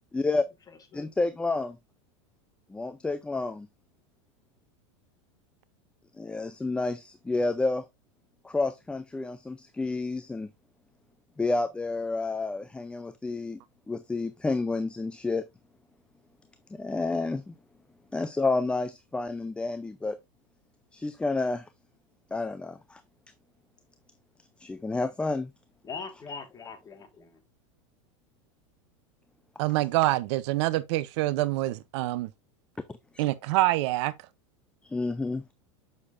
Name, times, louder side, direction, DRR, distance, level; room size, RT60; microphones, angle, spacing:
voice 1, 0.1-0.5 0.9-1.8 2.7-3.7 6.2-7.8 8.4-10.5 11.4-13.6 13.9-15.4 16.7-17.5 18.1-20.2 20.9-21.7 22.3-23.0 24.6-25.5 33.1-33.2 34.8-35.4, left 3 dB, 5° left, 0.4 m, -30 dB
voice 2, 0.7-1.1 25.8-27.4, left 5 dB, 20° left, 1.6 m, -42 dB
voice 3, 29.6-32.3 33.2-34.1, right 17 dB, 60° right, 0.6 m, -26 dB
7.1 x 6.5 x 2.5 m
supercardioid pair, 125°, 16 cm